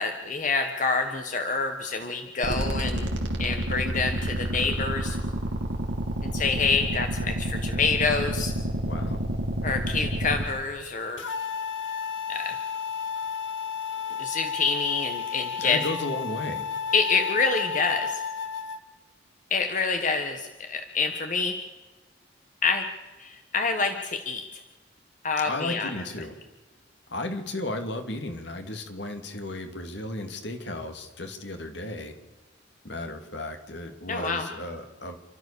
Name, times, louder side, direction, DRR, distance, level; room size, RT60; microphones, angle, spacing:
voice 1, 0.0-3.1 3.4-5.2 6.2-8.5 9.6-11.2 12.3-12.5 14.2-15.8 16.9-18.2 19.5-21.6 22.6-22.8 23.2-24.4 25.2-25.9 34.1-34.5, left 4 dB, 40° left, 6 dB, 1.3 m, -27 dB
sound 1, 2.4-10.4, right 1 dB, 70° right, 2.7 m, -29 dB
voice 2, 8.8-9.2 15.6-16.7 25.4-26.4 27.1-32.2 32.8-35.2, left 2 dB, 65° left, 6 dB, 2.4 m, -34 dB
sound 2, 11.2-18.8, left 6 dB, 80° left, 1.5 m, -32 dB
30.0 x 13.0 x 6.9 m, 1.2 s
head